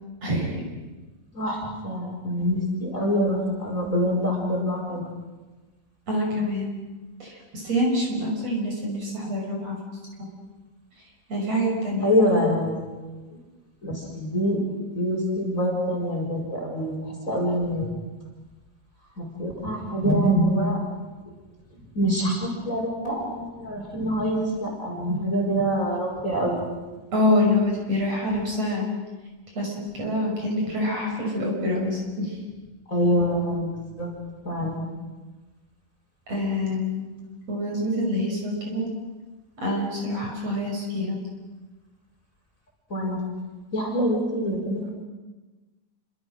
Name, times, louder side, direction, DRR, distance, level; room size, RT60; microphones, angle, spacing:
voice 1, 0.2-0.6 6.1-6.7 7.2-9.8 11.3-12.1 27.1-28.9 29.5-32.4 36.3-37.1 37.5-38.8 39.6-41.2, left 1 dB, 45° right, -1 dB, 6.8 m, -26 dB
voice 2, 1.3-5.0 12.0-13.3 13.8-14.6 14.9-17.9 19.2-20.8 21.3-21.4 21.9-26.6 32.9-34.1 34.4-34.9 42.9-43.2 43.7-44.9, equal, 20° left, -1 dB, 6.1 m, -25 dB
29.0 x 26.0 x 6.5 m, 1.2 s
omnidirectional pair, 4.2 m